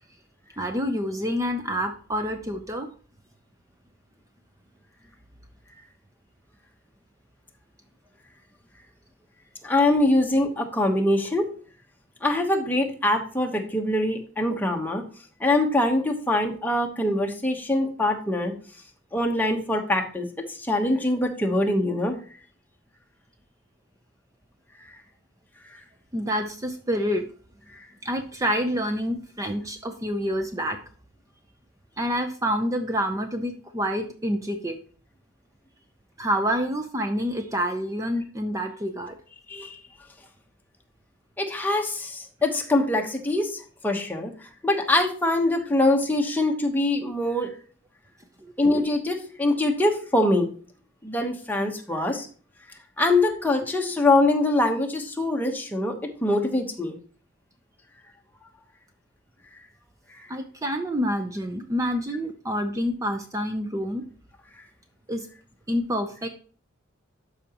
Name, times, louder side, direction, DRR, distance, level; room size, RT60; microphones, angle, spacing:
voice 1, 0.6-2.9 26.1-27.2 28.0-30.8 32.0-34.8 36.2-39.2 48.4-48.5 60.3-64.0 65.1-65.3 65.7-66.3, equal, 15° right, 6 dB, 0.6 m, -27 dB
voice 2, 9.6-11.5 12.2-15.0 15.4-18.5 19.1-20.3 20.6-22.2 39.5-39.8 41.4-44.3 44.6-47.5 48.6-50.5 51.0-52.3 53.0-57.0, left 2 dB, 10° left, 2 dB, 1.1 m, -23 dB
12.0 x 4.9 x 2.9 m, 0.41 s
head